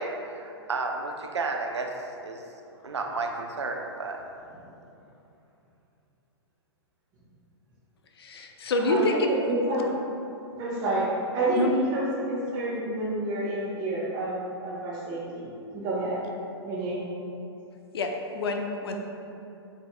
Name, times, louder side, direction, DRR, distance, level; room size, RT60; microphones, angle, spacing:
voice 1, 0.0-1.9 2.2-2.4 2.8-4.2, right 3 dB, 80° right, 2 dB, 0.5 m, -32 dB
voice 2, 8.1-9.3 11.5-11.7 12.5-12.6 17.9-19.0, left 2 dB, 65° left, 3 dB, 0.5 m, -27 dB
voice 3, 8.9-9.8 10.6-11.1 11.3-16.2 16.6-17.0, right 1 dB, 25° right, -11 dB, 0.9 m, -29 dB
7.8 x 2.8 x 2.2 m, 2.7 s
figure-of-eight pair, 110°, 14 cm